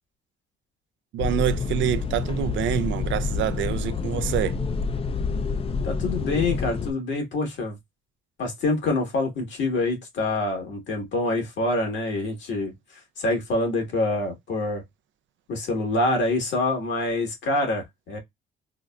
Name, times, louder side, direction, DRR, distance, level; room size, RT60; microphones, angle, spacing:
voice 1, 1.1-4.6, right 11 dB, 70° right, 0.4 m, -26 dB
sound 1, 1.2-6.9, left 4 dB, 30° left, 0.4 m, -28 dB
voice 2, 5.8-7.8 8.4-12.7 13.2-14.8 15.5-18.2, left 2 dB, 70° left, 1.7 m, -26 dB
3.8 x 2.0 x 2.3 m
cardioid pair, 90°, 20 cm